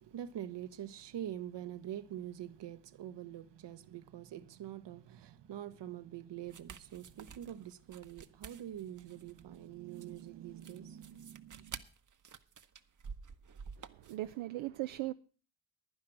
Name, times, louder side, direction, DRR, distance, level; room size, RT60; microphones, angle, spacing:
voice 1, 0.0-11.8, right 11 dB, 65° right, 1.1 m, -45 dB
sound 1, 6.5-14.3, right 6 dB, 40° right, 1.0 m, -51 dB
voice 2, 13.8-15.1, right 17 dB, 80° right, 0.6 m, -39 dB
10.5 x 10.5 x 6.2 m
supercardioid pair, 55°, 46 cm